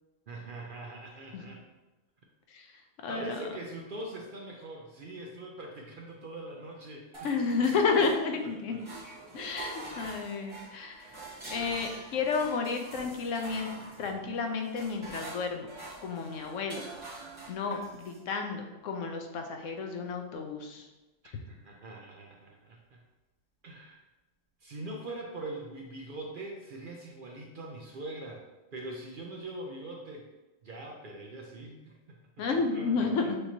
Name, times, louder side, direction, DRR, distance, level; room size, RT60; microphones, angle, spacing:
voice 1, 0.3-1.6 3.1-7.2 7.5-7.9 8.4-8.8 11.0-11.4 21.2-23.0 23.6-24.0 24.6-28.5 28.7-30.3 30.6-32.4 32.7-33.3, right 2 dB, 55° right, 0 dB, 0.6 m, -43 dB
voice 2, 3.0-3.5 7.2-8.8 9.3-11.1 11.5-15.7 16.0-16.8 17.5-20.9 32.4-33.4, left 4 dB, 75° left, 4 dB, 1.0 m, -31 dB
sound 1, 7.1-8.5 8.8-18.2, right 2 dB, 25° right, 1.1 m, -45 dB
6.5 x 3.0 x 2.7 m, 1.1 s
omnidirectional pair, 1.3 m